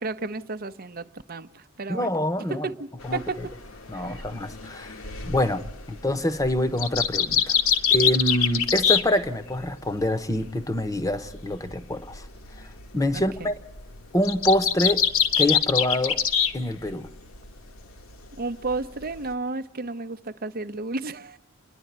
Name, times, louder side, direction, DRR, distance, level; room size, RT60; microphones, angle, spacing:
voice 1, 0.0-2.1 2.5-3.4 3.9-4.2 5.0-5.3 13.1-13.5 18.4-21.4, right 3 dB, 40° right, 0.7 m, -33 dB
voice 2, 1.9-2.7 3.0-3.2 3.9-4.9 5.3-7.5 7.9-12.3 12.9-13.5 14.1-15.0 15.4-16.2 16.5-17.1, left 1 dB, 15° left, 0.9 m, -25 dB
sound 1, 3.0-9.7 10.0-16.6 16.8-17.5 17.9-19.3, left 8 dB, 65° left, 1.2 m, -25 dB
29.0 x 11.0 x 9.4 m
head